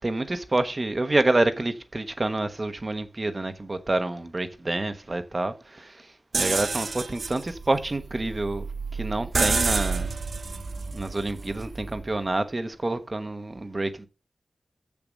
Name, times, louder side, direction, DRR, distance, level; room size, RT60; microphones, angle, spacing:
voice 1, 0.0-5.9 6.4-8.7 9.0-10.1 10.9-14.1, right 2 dB, 30° right, 1.1 m, -27 dB
sound 1, 6.3-12.1, right 4 dB, 60° right, 0.6 m, -29 dB
7.8 x 7.0 x 6.4 m
wide cardioid pair, 115°, 0 cm